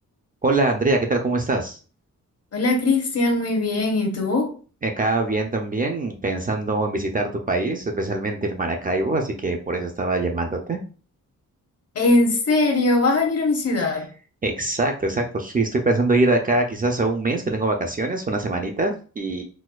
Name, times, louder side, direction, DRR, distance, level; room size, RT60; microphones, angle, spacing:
voice 1, 0.4-1.8 4.8-10.8 14.4-19.4, right 2 dB, 25° right, 0.4 m, -23 dB
voice 2, 2.5-4.5 11.9-14.1, left 2 dB, 50° left, 0.8 m, -20 dB
4.1 x 2.2 x 2.3 m
wide cardioid pair, 135°, 32 cm